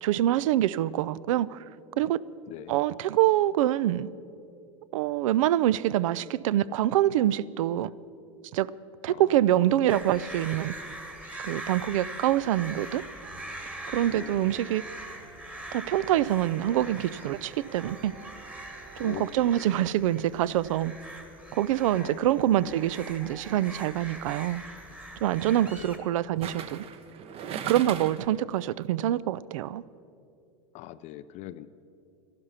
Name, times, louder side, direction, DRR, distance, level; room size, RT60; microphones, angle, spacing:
voice 1, 0.0-1.6 2.0-2.2 2.7-4.1 4.9-7.9 8.5-8.7 9.0-10.7 11.4-13.0 13.9-14.9 15.7-18.1 19.0-20.9 21.5-24.6 25.2-26.8 27.5-29.8, right 13 dB, 75° right, 20 dB, 0.4 m, -25 dB
voice 2, 2.5-2.8 9.1-9.2 14.1-14.5 19.0-19.3 19.5-19.6 22.0-22.3 22.6-22.8 25.6-26.0 30.7-31.7, left 13 dB, 45° left, 13 dB, 0.5 m, -42 dB
sound 1, 9.9-26.0, right 1 dB, 10° right, 1.3 m, -43 dB
sound 2, 13.2-19.1, right 5 dB, 55° right, 3.0 m, -51 dB
sound 3, 23.8-24.1 26.4-28.4 28.7-28.8, right 7 dB, 35° right, 0.8 m, -38 dB
13.5 x 11.5 x 5.6 m, 2.6 s
supercardioid pair, 120°, 17 cm